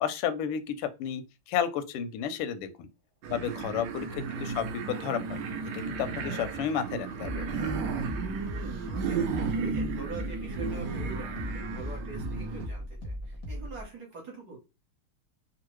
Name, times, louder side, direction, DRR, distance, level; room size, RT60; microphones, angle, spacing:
voice 1, 0.0-2.9 3.3-4.1 4.3-5.4 5.7-7.5, left 8 dB, 85° left, 1.5 m, -32 dB
sound 1, 3.2-12.7, right 5 dB, 75° right, 1.0 m, -34 dB
voice 2, 4.1-4.5 8.5-14.6, right 3 dB, 55° right, 1.3 m, -44 dB
sound 2, 5.4-13.8, equal, 40° left, 0.5 m, -39 dB
3.6 x 2.0 x 3.0 m
omnidirectional pair, 2.4 m